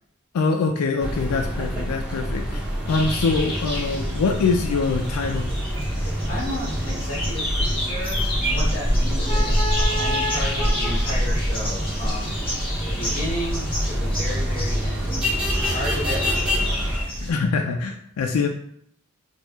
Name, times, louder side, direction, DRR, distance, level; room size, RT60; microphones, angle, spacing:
voice 1, 0.3-5.5 17.2-18.5, left 4 dB, 90° left, 2 dB, 0.3 m, -24 dB
sound 1, 1.0-17.0, equal, 5° right, 0.6 m, -25 dB
sound 2, 2.9-17.3, left 1 dB, 25° left, 1.1 m, -31 dB
voice 2, 6.3-16.7, equal, 40° left, -6 dB, 1.4 m, -33 dB
4.3 x 2.3 x 2.3 m, 0.69 s
head